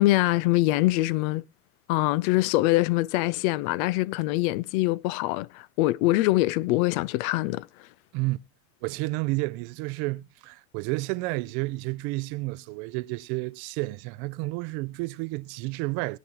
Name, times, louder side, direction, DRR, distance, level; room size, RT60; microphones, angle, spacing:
voice 1, 0.0-1.4 1.9-7.7, left 18 dB, 70° left, 0.6 m, -24 dB
voice 2, 8.8-16.2, right 22 dB, 65° right, 0.6 m, -31 dB
18.5 x 9.3 x 3.0 m
hypercardioid pair, 70°, 43 cm